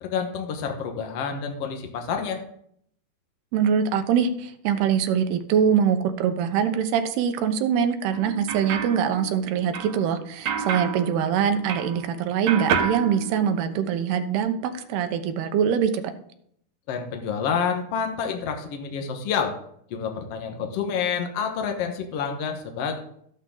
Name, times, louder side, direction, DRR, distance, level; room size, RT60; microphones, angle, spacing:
voice 1, 0.0-2.4 16.9-19.5 19.9-23.0, left 6 dB, 65° left, 3 dB, 1.6 m, -28 dB
voice 2, 3.5-16.1, right 8 dB, 85° right, 8 dB, 2.9 m, -23 dB
sound 1, 8.1-12.1 12.5-14.0, right 6 dB, 65° right, 2.0 m, -30 dB
13.5 x 11.5 x 3.8 m, 0.69 s
omnidirectional pair, 4.5 m